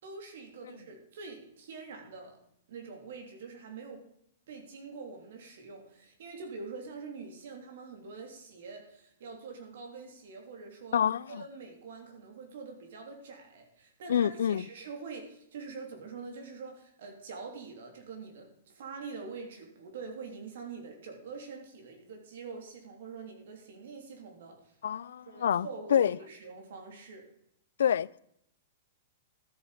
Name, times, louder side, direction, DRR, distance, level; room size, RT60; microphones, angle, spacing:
voice 1, 0.0-2.4 2.7-4.0 4.5-11.0 11.3-24.7 25.3-27.2, right 4 dB, 60° right, 3.1 m, -45 dB
voice 2, 10.9-11.4 14.1-14.7 24.8-26.2 27.8-28.2, left 9 dB, 85° left, 0.3 m, -27 dB
13.0 x 7.8 x 5.0 m
supercardioid pair, 175°, 0 cm